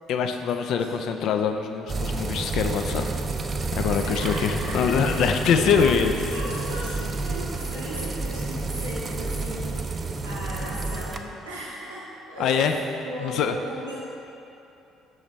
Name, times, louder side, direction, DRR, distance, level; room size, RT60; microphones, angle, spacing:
voice 1, 0.1-3.0 3.8-6.1 12.4-12.7 13.2-13.5, left 7 dB, 60° left, 6 dB, 0.4 m, -23 dB
voice 2, 0.7-1.0 4.0-5.8 6.3-14.0, equal, 80° right, -9 dB, 0.8 m, -37 dB
sound 1, 1.9-11.2, right 3 dB, 35° right, 0.4 m, -30 dB
6.1 x 4.9 x 4.0 m, 2.8 s
figure-of-eight pair, 50°, 0 cm